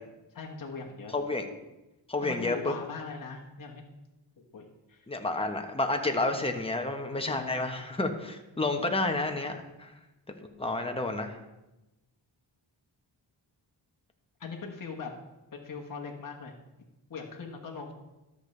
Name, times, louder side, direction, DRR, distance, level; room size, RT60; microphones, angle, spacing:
voice 1, 0.3-1.2 2.2-3.8 4.4-5.1 6.2-6.4 7.3-7.7 14.4-15.1 15.5-17.9, left 4 dB, 45° left, 0 dB, 1.3 m, -41 dB
voice 2, 1.1-1.5 2.1-2.7 5.1-9.9 10.6-11.4, left 2 dB, 10° left, 4 dB, 1.1 m, -30 dB
13.0 x 6.7 x 3.3 m, 1.0 s
cardioid pair, 75°, 45 cm